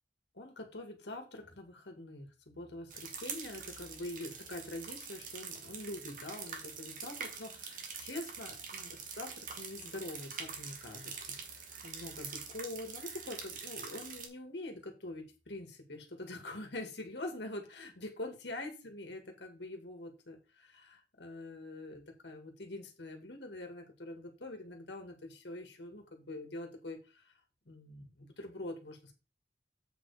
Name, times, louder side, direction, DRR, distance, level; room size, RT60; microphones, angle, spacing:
voice 1, 0.3-11.1 11.4-11.6 11.8-27.2 27.7-29.1, left 2 dB, 75° left, 4 dB, 1.9 m, -45 dB
sound 1, 2.9-14.3, right 6 dB, 45° right, 1.5 m, -45 dB
7.9 x 4.8 x 4.8 m, 0.30 s
head